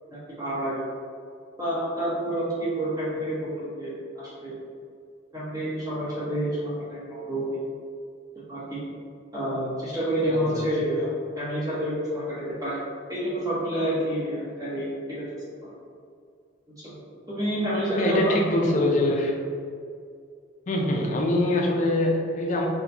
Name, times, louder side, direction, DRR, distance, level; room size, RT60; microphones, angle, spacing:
voice 1, 0.1-0.8 1.6-4.5 5.3-7.6 8.5-8.8 9.3-12.8 13.1-15.7 16.8-17.0 17.3-18.9, equal, 20° right, -10 dB, 0.9 m, -29 dB
voice 2, 10.3-10.6 18.0-19.3 20.7-22.6, left 1 dB, 35° left, 0 dB, 0.4 m, -24 dB
4.2 x 2.2 x 2.7 m, 2.2 s
head